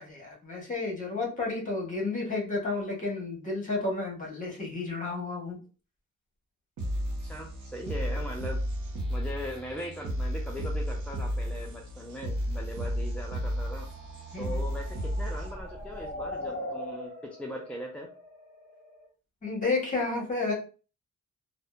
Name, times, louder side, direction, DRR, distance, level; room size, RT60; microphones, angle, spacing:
voice 1, 0.0-5.6 14.3-14.6 19.4-20.5, left 3 dB, 25° left, -1 dB, 1.1 m, -31 dB
sound 1, 6.8-15.8, equal, 65° right, 0.8 m, -33 dB
voice 2, 7.2-8.6 9.1-13.9 14.4-18.1, equal, 5° left, -1 dB, 0.3 m, -39 dB
sound 2, 13.3-19.0, left 1 dB, 25° right, 1.4 m, -41 dB
2.7 x 2.1 x 2.2 m, 0.35 s
cardioid pair, 105°, 32 cm